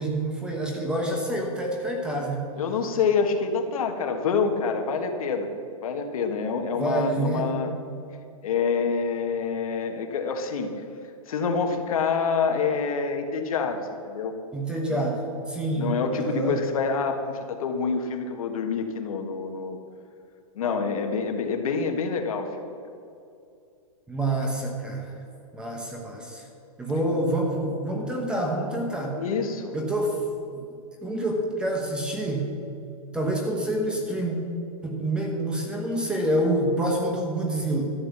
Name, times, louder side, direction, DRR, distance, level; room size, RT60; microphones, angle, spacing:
voice 1, 0.0-2.5 6.7-7.5 14.5-16.6 24.1-25.1 25.5-26.5 26.8-29.2 29.7-30.2 30.5-30.6 31.0-32.5 33.1-34.4 34.8-37.8, right 1 dB, 5° right, 0 dB, 1.0 m, -27 dB
voice 2, 2.6-5.5 5.8-7.7 8.4-10.7 11.3-14.3 14.9-15.0 15.7-19.8 20.5-22.7 29.1-29.8, left 5 dB, 70° left, 5 dB, 1.6 m, -27 dB
13.0 x 7.4 x 7.1 m, 2.5 s
supercardioid pair, 175°, 19 cm